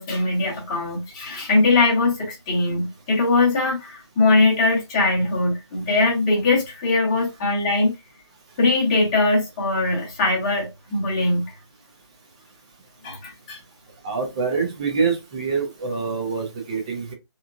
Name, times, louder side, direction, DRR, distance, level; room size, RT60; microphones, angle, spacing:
voice 1, 0.0-7.9 8.6-11.4 13.0-13.6, left 3 dB, 15° left, 1.0 m, -21 dB
voice 2, 14.0-17.1, right 5 dB, 15° right, 0.6 m, -25 dB
3.4 x 3.0 x 2.5 m
figure-of-eight pair, 160°, 15 cm